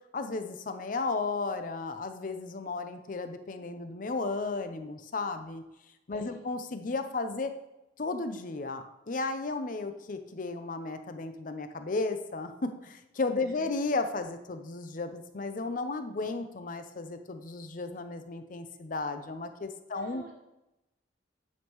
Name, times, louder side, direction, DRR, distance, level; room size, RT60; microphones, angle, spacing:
voice 1, 0.1-5.6 6.1-7.5 8.0-20.2, left 3 dB, 45° left, 8 dB, 0.6 m, -34 dB
voice 2, 6.1-6.5 13.4-13.5 19.9-20.3, right 1 dB, 45° right, -5 dB, 1.4 m, -50 dB
9.3 x 5.3 x 3.1 m, 0.93 s
head